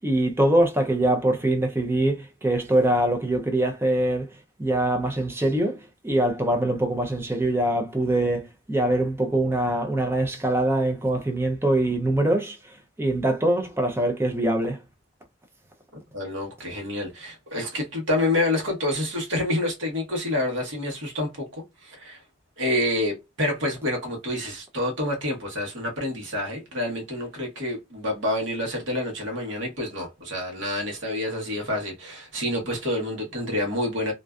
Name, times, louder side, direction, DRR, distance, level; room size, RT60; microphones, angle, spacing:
voice 1, 0.0-4.3 4.6-14.8, right 1 dB, 10° right, 0.4 m, -23 dB
voice 2, 16.1-22.2 22.6-34.1, left 1 dB, 65° right, 1.0 m, -28 dB
2.4 x 2.3 x 2.2 m
head